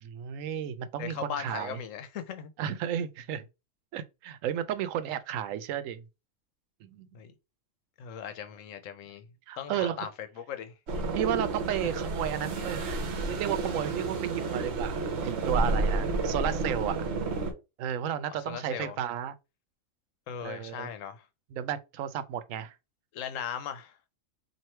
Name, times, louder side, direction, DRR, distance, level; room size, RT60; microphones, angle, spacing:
voice 1, 0.0-1.8 2.6-3.5 3.9-6.0 6.8-7.1 9.5-10.0 11.2-17.1 17.8-19.3 20.4-20.9 21.5-22.7, right 10 dB, 90° right, 1.0 m, -33 dB
voice 2, 1.0-2.5 7.1-7.3 8.0-9.3 9.6-10.7 18.3-19.0 20.3-21.3 23.1-24.0, left 8 dB, 90° left, 1.0 m, -38 dB
sound 1, 10.9-17.5, right 3 dB, 60° right, 1.1 m, -31 dB
3.1 x 2.6 x 4.3 m
omnidirectional pair, 1.3 m